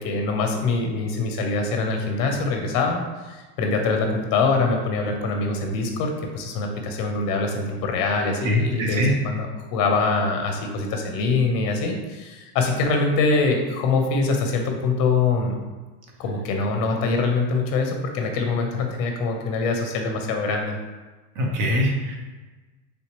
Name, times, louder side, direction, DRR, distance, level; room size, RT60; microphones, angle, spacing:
voice 1, 0.0-3.0 3.3-15.6 16.2-20.8, left 3 dB, 45° left, 3 dB, 0.7 m, -24 dB
voice 2, 8.4-9.1 21.4-22.2, left 1 dB, 40° right, 1 dB, 0.7 m, -22 dB
3.3 x 2.8 x 3.0 m, 1.2 s
supercardioid pair, 115°, 50 cm